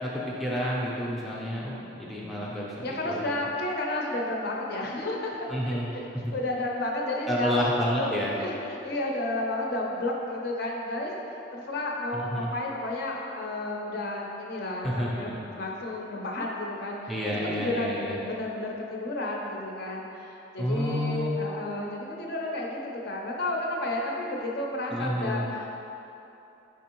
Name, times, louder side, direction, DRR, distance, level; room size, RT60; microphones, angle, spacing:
voice 1, 0.0-3.3 5.5-5.9 6.2-6.3 7.3-8.3 12.1-12.5 14.8-15.5 17.1-18.2 20.6-21.4 24.9-25.5, equal, ahead, -6 dB, 0.4 m, -30 dB
voice 2, 2.8-5.3 5.6-6.1 6.3-7.5 7.9-8.1 8.4-17.1 17.4-25.7, left 2 dB, 55° left, -1 dB, 0.5 m, -32 dB
4.9 x 3.4 x 3.0 m, 2.9 s
head